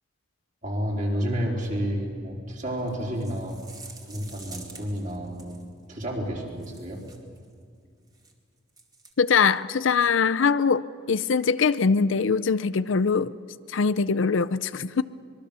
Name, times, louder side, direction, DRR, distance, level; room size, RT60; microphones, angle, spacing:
voice 1, 0.6-3.6 4.0-5.6 5.9-7.0, equal, 40° right, -1 dB, 4.3 m, -30 dB
sound 1, 2.8-5.7 6.5-7.4 8.1-8.3 8.7-9.1, right 3 dB, 20° right, 2.4 m, -47 dB
voice 2, 9.2-13.3 13.7-15.0, left 5 dB, 70° left, 16 dB, 0.5 m, -22 dB
25.0 x 22.0 x 6.9 m, 2.2 s
head